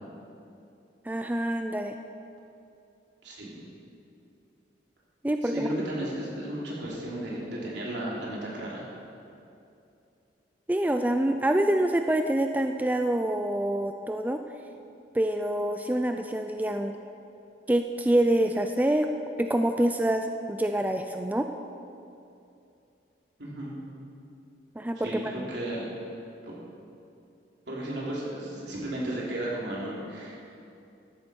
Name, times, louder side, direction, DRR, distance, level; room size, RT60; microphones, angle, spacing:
voice 1, 1.1-2.0 5.2-5.7 10.7-14.4 15.1-16.9 17.7-19.1 19.4-21.5 24.8-25.1, right 1 dB, 10° right, 6 dB, 0.3 m, -26 dB
voice 2, 3.2-3.6 5.4-8.8 23.4-23.7 25.0-25.8 26.4-26.5 27.7-30.4, right 1 dB, 75° right, -5 dB, 3.3 m, -34 dB
14.0 x 11.0 x 4.5 m, 2.7 s
head